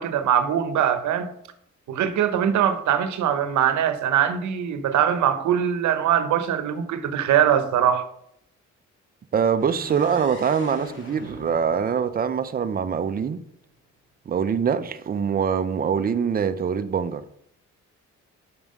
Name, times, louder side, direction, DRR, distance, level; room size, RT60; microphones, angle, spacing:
voice 1, 0.0-1.3 1.9-8.1, right 9 dB, 70° right, 0.9 m, -22 dB
voice 2, 9.3-13.4 14.3-17.2, right 7 dB, 30° right, 0.5 m, -24 dB
sound 1, 9.6-13.4, left 2 dB, 40° left, 2.0 m, -43 dB
6.0 x 5.4 x 5.3 m
cardioid pair, 90°, 30 cm